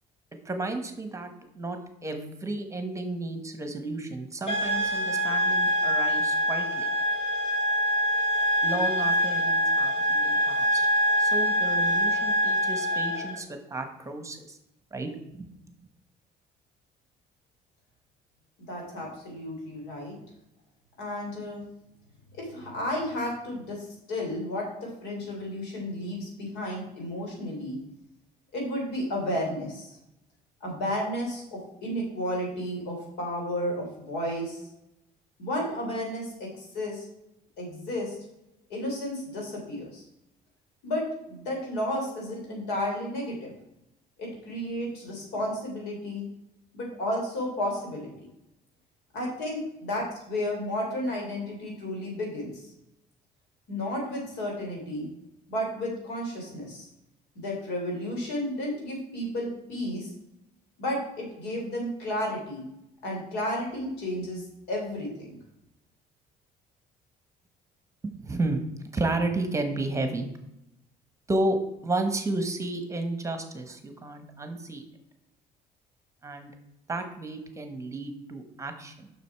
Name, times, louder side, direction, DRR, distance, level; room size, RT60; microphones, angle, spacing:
voice 1, 0.4-6.9 8.6-10.9 11.2-14.6 14.9-15.5 68.0-68.6 68.9-70.3 71.3-71.6 71.8-74.8 76.2-76.5 76.9-79.1, right 2 dB, 15° right, 7 dB, 1.1 m, -32 dB
sound 1, 4.5-13.4, equal, 40° left, 3.2 m, -25 dB
voice 2, 18.7-20.2 21.0-21.6 22.3-27.8 28.5-29.9 30.6-34.6 35.4-37.0 37.6-38.2 38.7-40.0 40.8-43.5 44.2-46.2 46.7-48.1 49.1-52.6 53.7-55.1 55.5-56.8 57.3-60.1 60.8-62.6 63.0-65.4, left 1 dB, 90° left, -1 dB, 3.4 m, -32 dB
6.8 x 6.1 x 4.6 m, 0.84 s
cardioid pair, 110°, 17 cm